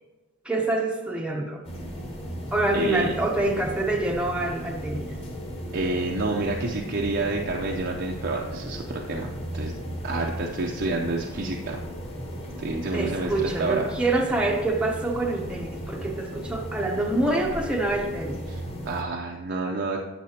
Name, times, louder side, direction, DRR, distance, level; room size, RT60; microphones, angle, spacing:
voice 1, 0.4-1.6 2.5-5.2 12.9-18.4, right 2 dB, 5° right, 0 dB, 0.7 m, -26 dB
sound 1, 1.6-19.0, equal, 25° left, 1.3 m, -36 dB
voice 2, 2.7-3.1 5.7-9.7 10.0-11.8 12.6-13.9 18.5-20.0, right 2 dB, 50° right, 0 dB, 0.6 m, -29 dB
11.5 x 7.6 x 2.8 m, 1.2 s
head